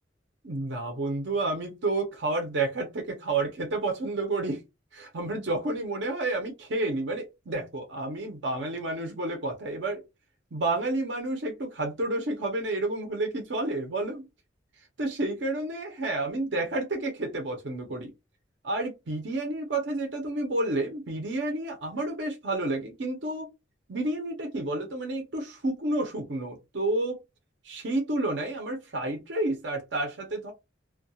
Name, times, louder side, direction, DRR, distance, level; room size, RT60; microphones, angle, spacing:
voice 1, 0.4-4.6 4.9-10.0 10.5-14.3 15.0-18.1 18.6-23.5 23.9-27.1 27.6-30.5, right 2 dB, 65° right, 0.7 m, -30 dB
2.3 x 2.2 x 2.7 m
head